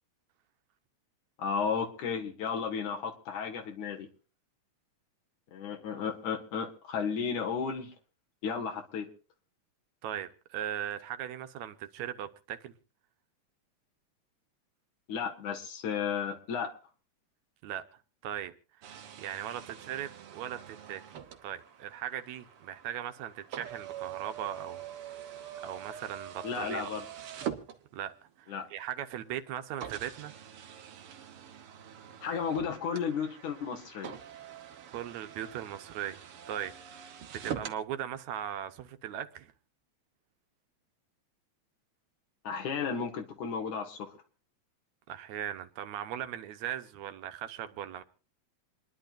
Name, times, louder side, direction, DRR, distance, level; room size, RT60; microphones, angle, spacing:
voice 1, 1.4-4.1 5.5-7.9 8.4-9.1 15.1-16.7 26.4-27.0 28.5-28.7 32.2-34.1 42.4-44.1, left 6 dB, 80° left, 3.2 m, -33 dB
voice 2, 10.0-12.7 17.6-17.8 18.2-18.5 19.2-21.0 21.4-24.8 25.6-27.0 27.9-28.1 28.4-30.3 34.9-36.2 36.5-39.5 45.1-48.0, right 10 dB, 75° right, 2.1 m, -38 dB
sound 1, 18.8-28.3 29.0-29.1 29.8-37.8, right 9 dB, 60° right, 1.7 m, -44 dB
27.5 x 11.0 x 2.6 m
omnidirectional pair, 3.4 m